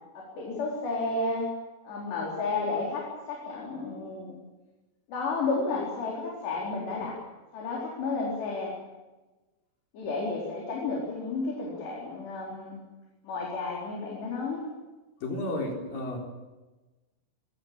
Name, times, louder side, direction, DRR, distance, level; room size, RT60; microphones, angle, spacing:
voice 1, 0.1-1.5 1.8-4.3 5.1-7.2 7.5-8.8 9.9-12.8 13.2-14.7, left 3 dB, 70° left, -3 dB, 6.3 m, -32 dB
voice 2, 15.2-16.2, left 1 dB, 50° left, 0 dB, 5.6 m, -32 dB
25.0 x 16.5 x 8.8 m, 1.2 s
omnidirectional pair, 5.1 m